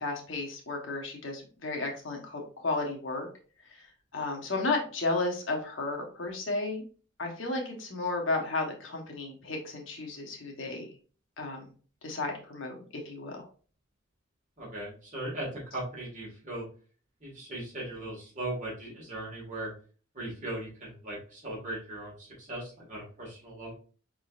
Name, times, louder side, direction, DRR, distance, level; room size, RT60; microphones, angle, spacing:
voice 1, 0.0-3.3 3.7-3.8 4.1-6.8 7.2-10.9 11.4-11.7 12.0-13.4, left 3 dB, 70° left, 1 dB, 1.1 m, -33 dB
voice 2, 14.6-16.7 17.2-19.7 20.1-23.7, right 1 dB, 40° right, -3 dB, 1.9 m, -38 dB
5.0 x 3.7 x 2.4 m, 0.40 s
head